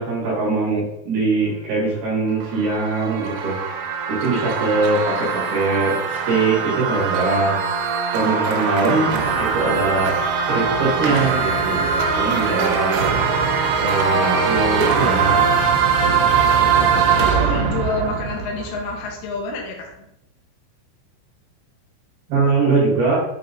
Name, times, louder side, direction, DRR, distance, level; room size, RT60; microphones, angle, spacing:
voice 1, 0.0-3.5 4.2-7.6 8.1-9.1 9.4-10.1 10.5-11.8 12.2-13.0 13.8-15.4 22.3-23.2, right 3 dB, 60° right, -6 dB, 3.1 m, -21 dB
sound 1, 2.2-19.1, right 5 dB, 85° right, 3.3 m, -21 dB
voice 2, 8.7-9.0 17.2-20.1, left 3 dB, 80° left, 0 dB, 3.4 m, -28 dB
8.2 x 2.9 x 4.0 m, 0.85 s
omnidirectional pair, 5.7 m